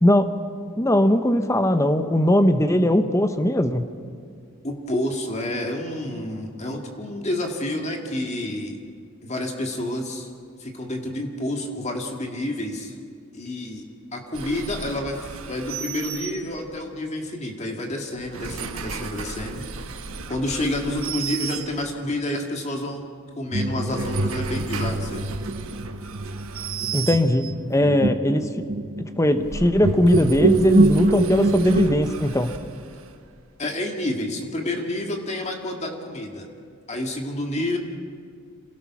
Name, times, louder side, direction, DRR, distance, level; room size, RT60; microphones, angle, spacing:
voice 1, 0.8-3.9 26.9-27.4 27.7-28.4 29.2-32.5, left 1 dB, 15° left, 9 dB, 0.9 m, -19 dB
voice 2, 4.6-8.8 9.2-10.3 10.6-13.0 13.3-13.8 14.1-19.7 20.3-23.1 23.4-25.3 33.6-36.5 36.9-37.8, left 1 dB, 30° left, 2 dB, 2.0 m, -29 dB
sound 1, 14.3-16.9 18.1-22.2 23.7-27.7 29.2-33.4, right 5 dB, 80° right, 1.2 m, -35 dB
sound 2, 23.5-32.0, right 2 dB, 45° right, 1.0 m, -24 dB
27.0 x 17.5 x 6.0 m, 2.1 s
head